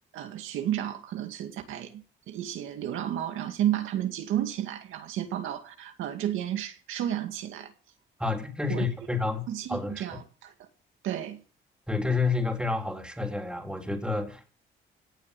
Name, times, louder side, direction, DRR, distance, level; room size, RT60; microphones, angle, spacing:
voice 1, 0.1-7.7 8.7-8.8 9.5-10.5 11.0-11.4, right 11 dB, 85° right, 2.2 m, -32 dB
voice 2, 8.2-10.2 11.9-14.5, left 3 dB, 5° right, 3.4 m, -29 dB
17.5 x 7.6 x 8.4 m
cardioid pair, 90°, 20 cm